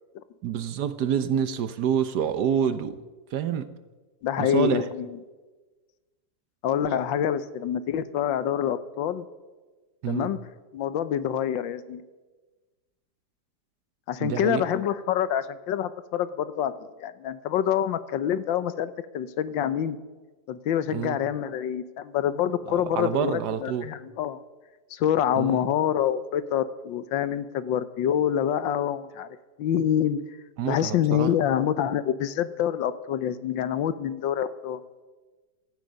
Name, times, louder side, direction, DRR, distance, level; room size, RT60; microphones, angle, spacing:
voice 1, 0.4-3.0 3.3-3.7 4.4-4.9 10.0-10.3 14.2-14.6 20.9-21.2 22.7-23.9 25.4-25.7 30.6-31.3, right 8 dB, 65° right, 12 dB, 1.3 m, -27 dB
voice 2, 4.2-5.1 6.6-9.2 10.1-10.4 10.7-12.0 14.1-16.7 17.0-20.0 20.5-24.4 24.9-29.3 29.6-30.2 30.6-34.8, left 9 dB, 80° left, 13 dB, 1.5 m, -26 dB
17.0 x 14.0 x 5.3 m, 1.3 s
omnidirectional pair, 2.1 m